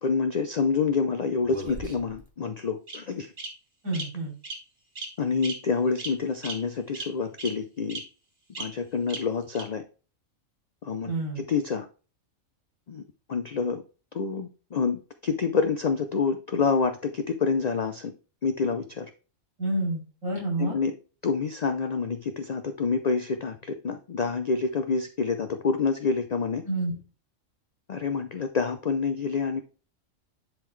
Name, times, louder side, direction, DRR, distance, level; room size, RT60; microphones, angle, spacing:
voice 1, 0.0-3.3 5.2-8.0 8.6-9.8 10.8-11.9 12.9-13.0 13.3-13.8 14.1-18.1 18.4-19.1 20.6-20.9 21.2-26.6 27.9-29.6, left 5 dB, 75° left, 8 dB, 0.3 m, -27 dB
Bird vocalization bird call bird song, 1.4-2.2 2.9-3.0 3.4-3.5 3.9-4.0 4.4-4.6 4.9-5.1 5.4-5.5 6.0-6.1 6.4-6.5 6.9-7.0 7.4-7.5 7.9-8.0 8.5-8.6 9.1-9.2 9.5-9.6, right 3 dB, 40° right, 1.7 m, -35 dB
voice 2, 3.8-4.3 11.1-11.4 19.6-20.8 26.7-26.9, right 2 dB, 80° right, -2 dB, 3.6 m, -29 dB
10.5 x 3.7 x 3.2 m, 0.36 s
omnidirectional pair, 1.4 m